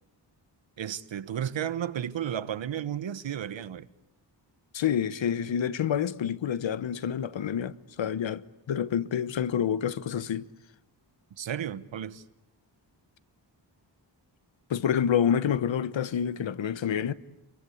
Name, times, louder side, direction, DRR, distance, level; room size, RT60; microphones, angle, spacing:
voice 1, 0.8-3.9 11.4-12.2, right 9 dB, 85° right, 1.2 m, -33 dB
voice 2, 4.7-10.5 14.7-17.1, left 8 dB, 85° left, 1.2 m, -28 dB
29.0 x 23.0 x 8.5 m
wide cardioid pair, 115°, 44 cm